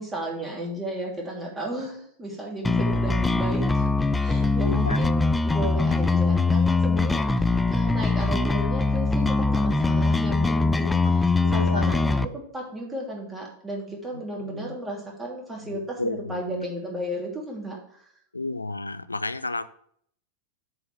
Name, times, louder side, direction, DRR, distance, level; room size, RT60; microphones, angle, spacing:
voice 1, 0.0-3.9 4.2-18.1, right 1 dB, 15° right, -1 dB, 3.0 m, -34 dB
sound 1, 2.6-12.2, left 3 dB, 10° left, 0.4 m, -22 dB
voice 2, 4.6-5.1 11.1-11.9 14.1-14.8 15.7-16.7 18.3-19.7, left 2 dB, 80° left, 14 dB, 0.4 m, -32 dB
7.7 x 4.8 x 7.3 m, 0.65 s
figure-of-eight pair, 90°, 0 cm